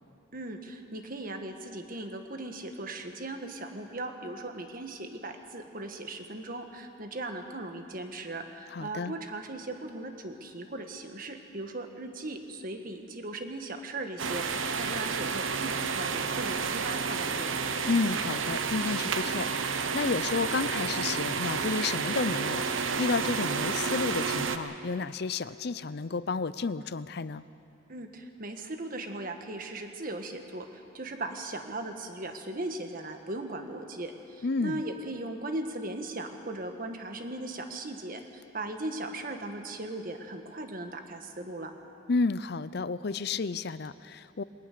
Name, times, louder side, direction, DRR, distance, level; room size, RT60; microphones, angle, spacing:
voice 1, 0.3-17.5 27.9-41.7, right 2 dB, 45° right, 5 dB, 1.6 m, -38 dB
voice 2, 8.7-9.1 17.8-27.4 34.4-34.8 42.1-44.4, left 4 dB, 55° left, 15 dB, 0.5 m, -31 dB
sound 1, 14.2-24.6, right 5 dB, 80° right, 1.0 m, -30 dB
22.5 x 19.0 x 6.8 m, 2.8 s
head